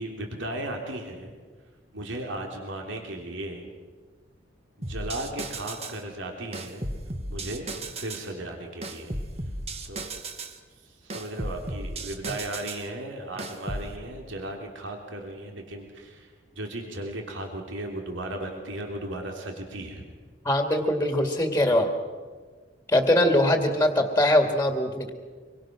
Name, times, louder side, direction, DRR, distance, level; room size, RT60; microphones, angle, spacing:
voice 1, 0.0-1.4 1.9-3.7 4.8-6.9 7.3-9.1 9.9-10.1 10.8-16.3 16.5-20.0, right 1 dB, 85° right, 2 dB, 3.3 m, -36 dB
sound 1, 4.8-6.0 6.5-8.3 8.8-10.6 11.1-12.9 13.4-13.9, right 2 dB, 35° right, 1.7 m, -35 dB
voice 2, 20.4-21.9 22.9-25.1, left 1 dB, 10° left, 5 dB, 2.2 m, -22 dB
25.5 x 23.5 x 6.2 m, 1.5 s
head